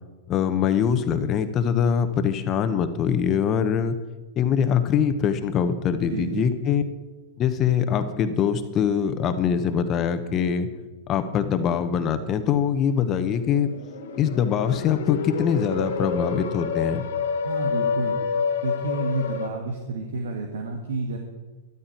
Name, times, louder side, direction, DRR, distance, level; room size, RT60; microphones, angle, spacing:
voice 1, 0.3-4.0 4.4-6.8 7.4-10.7 11.1-13.7 14.2-17.1, left 8 dB, 35° left, 10 dB, 1.2 m, -23 dB
voice 2, 6.1-6.5 17.4-18.2 18.6-21.2, right 2 dB, 75° right, 3 dB, 1.5 m, -30 dB
sound 1, 13.3-19.5, left 5 dB, 70° left, 1.6 m, -28 dB
13.0 x 12.5 x 4.6 m, 1.2 s
hypercardioid pair, 105°, 0 cm